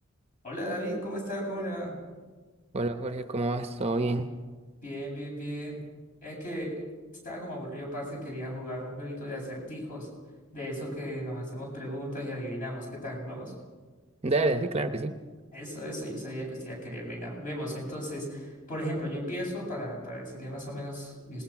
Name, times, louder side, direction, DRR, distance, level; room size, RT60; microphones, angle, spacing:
voice 1, 0.4-1.9 4.8-5.8 6.2-6.8 7.2-10.1 10.5-13.5 15.5-21.4, equal, 40° left, -1 dB, 7.8 m, -36 dB
voice 2, 2.7-4.3 14.2-15.2, right 2 dB, 30° right, 7 dB, 0.9 m, -28 dB
26.5 x 20.0 x 5.9 m, 1.4 s
head